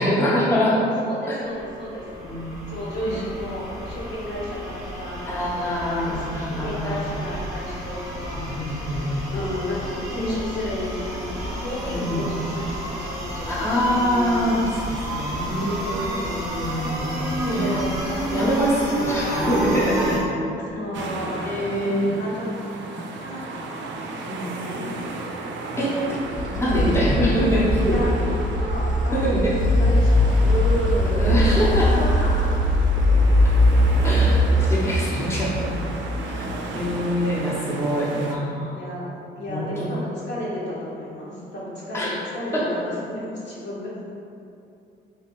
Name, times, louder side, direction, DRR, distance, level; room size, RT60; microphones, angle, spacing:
voice 1, 0.0-0.8 1.3-1.4 2.2-2.5 3.0-3.2 5.3-7.0 8.3-9.2 11.9-12.2 13.5-15.7 16.2-17.8 18.3-20.2 21.4-22.2 24.3-24.5 25.7-26.0 26.3-28.0 29.1-29.5 31.2-31.9 34.0-35.5 36.2-36.4 36.7-38.7 39.5-39.7 41.9-42.1 42.5-42.6, equal, 15° left, -7 dB, 0.7 m, -24 dB
voice 2, 0.6-2.2 2.7-6.3 6.6-8.6 8.9-14.5 15.5-16.6 17.4-20.0 20.5-22.5 23.0-23.4 24.0-24.9 26.6-27.0 27.9-32.6 36.3-37.1 38.6-39.1 39.4-43.9, left 1 dB, 60° left, -7 dB, 1.1 m, -32 dB
sound 1, 1.5-20.2, right 1 dB, 15° right, 0.9 m, -31 dB
sound 2, 20.9-38.4, right 3 dB, 70° right, 0.4 m, -34 dB
sound 3, 26.1-36.9, left 1 dB, 40° left, 0.4 m, -21 dB
3.3 x 2.7 x 3.0 m, 2.6 s
cardioid pair, 90°, 20 cm